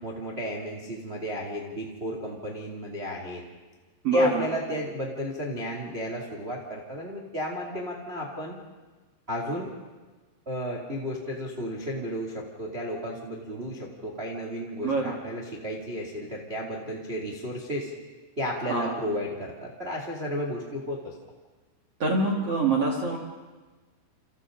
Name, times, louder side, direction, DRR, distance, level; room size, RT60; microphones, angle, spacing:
voice 1, 0.0-3.4 4.1-8.6 9.3-9.7 10.4-17.9 18.4-21.1, equal, 45° right, 0 dB, 0.8 m, -33 dB
voice 2, 4.0-4.4 14.8-15.1 18.7-19.0 22.0-23.2, right 2 dB, 60° right, -1 dB, 1.5 m, -24 dB
29.0 x 29.0 x 3.8 m, 1.3 s
omnidirectional pair, 5.9 m